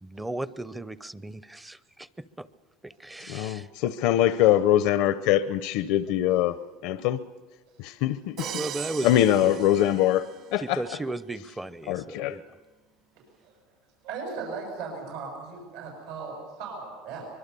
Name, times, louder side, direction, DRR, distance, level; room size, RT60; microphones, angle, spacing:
voice 1, 0.0-2.5 2.8-3.7 8.5-9.6 10.6-12.4, right 2 dB, 10° right, 0.6 m, -36 dB
voice 2, 3.3-6.6 6.8-7.2 7.8-8.5 9.0-10.8 11.9-12.4, left 12 dB, 65° left, 0.6 m, -23 dB
voice 3, 7.7-8.0 13.4-13.5 14.0-17.3, right 4 dB, 80° right, 7.0 m, -38 dB
Crash cymbal, 8.4-10.6, right 9 dB, 55° right, 2.4 m, -38 dB
24.0 x 22.5 x 6.9 m
supercardioid pair, 125°, 0 cm